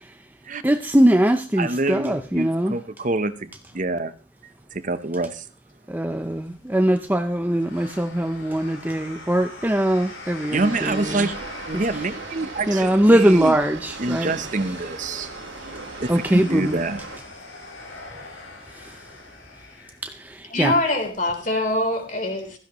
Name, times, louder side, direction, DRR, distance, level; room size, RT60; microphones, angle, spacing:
voice 1, 0.6-2.8 5.9-11.3 12.7-14.3 16.1-16.8 20.0-20.7, right 1 dB, 10° right, 0.6 m, -21 dB
voice 2, 1.6-4.1 4.7-5.5 10.5-11.4 11.7-13.6 14.0-15.3 16.0-17.0, right 2 dB, 40° right, 0.8 m, -26 dB
sound 1, 6.1-20.3, left 2 dB, 85° left, 6.8 m, -43 dB
sound 2, 10.5-17.2, right 3 dB, 70° right, 2.0 m, -38 dB
voice 3, 20.5-22.6, left 1 dB, 40° left, 3.5 m, -23 dB
16.0 x 14.5 x 3.0 m
head